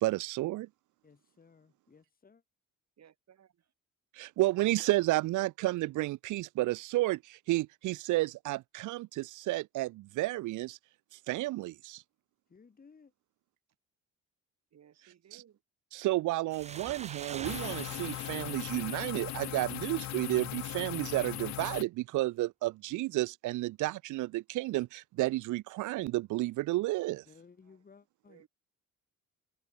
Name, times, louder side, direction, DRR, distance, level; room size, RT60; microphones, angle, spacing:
voice 1, 0.0-0.7 4.2-10.8 11.3-12.0 15.9-27.2, right 18 dB, 80° right, 0.6 m, -31 dB
voice 2, 1.0-2.4 12.5-13.1 27.3-28.5, left 5 dB, 30° left, 1.8 m, -59 dB
voice 3, 3.0-3.7 14.7-15.6 27.6-27.8 28.3-28.5, right 9 dB, 60° right, 4.5 m, -60 dB
sound 1, 16.5-19.9, right 6 dB, 25° right, 0.4 m, -45 dB
sound 2, 17.5-21.8, left 14 dB, 65° left, 0.6 m, -39 dB
cardioid pair, 90°, 30 cm